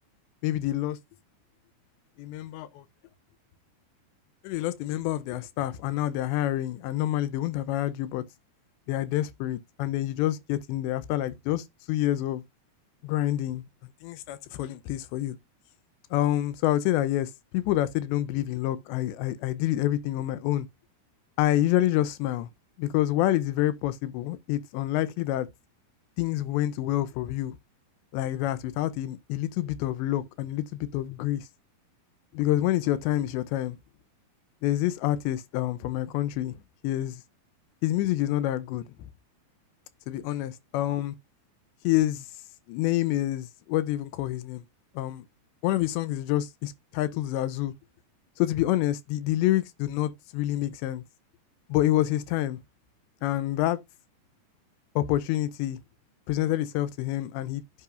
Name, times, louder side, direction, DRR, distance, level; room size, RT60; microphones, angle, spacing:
voice 1, 0.4-1.0 2.2-2.8 4.4-8.2 8.9-12.4 13.0-13.6 14.0-15.4 16.1-20.7 21.4-22.5 22.8-25.5 26.2-27.6 28.1-31.5 32.3-33.8 34.6-36.6 36.8-37.2 37.8-39.1 40.1-41.1 41.8-42.3 42.7-44.6 45.0-45.2 45.6-47.7 48.4-51.0 51.7-52.6 53.2-53.8 55.0-55.8 56.3-57.6, left 14 dB, 85° left, 3.0 m, -27 dB
11.0 x 8.7 x 2.6 m
omnidirectional pair, 4.9 m